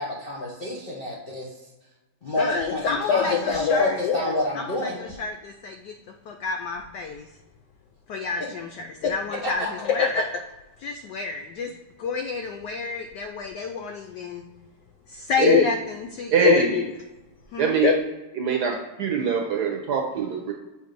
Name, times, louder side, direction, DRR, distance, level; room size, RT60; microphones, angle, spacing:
voice 1, 0.0-1.5 2.2-5.1 9.4-9.7, left 1 dB, 55° left, -4 dB, 0.6 m, -29 dB
voice 2, 2.4-5.9 6.3-7.3 8.1-10.4 10.8-11.7 12.0-14.4 15.1-16.8 17.5-18.0, left 5 dB, 85° left, 4 dB, 0.9 m, -26 dB
voice 3, 16.3-16.7 17.6-17.9 18.4-20.5, right 7 dB, 65° right, 1 dB, 1.0 m, -23 dB
7.5 x 2.6 x 5.2 m, 1.1 s
omnidirectional pair, 2.4 m